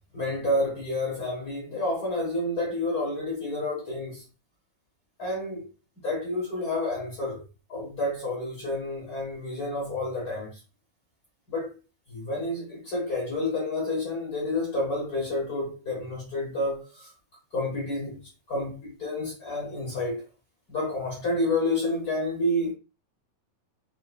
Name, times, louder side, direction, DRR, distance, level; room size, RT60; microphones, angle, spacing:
voice 1, 0.1-4.2 5.2-5.6 6.0-7.4 7.7-10.5 11.5-11.7 12.1-17.1 17.5-18.2 18.5-20.2 20.7-22.7, left 1 dB, 80° left, 0.8 m, -29 dB
5.7 x 2.9 x 2.3 m
omnidirectional pair, 4.0 m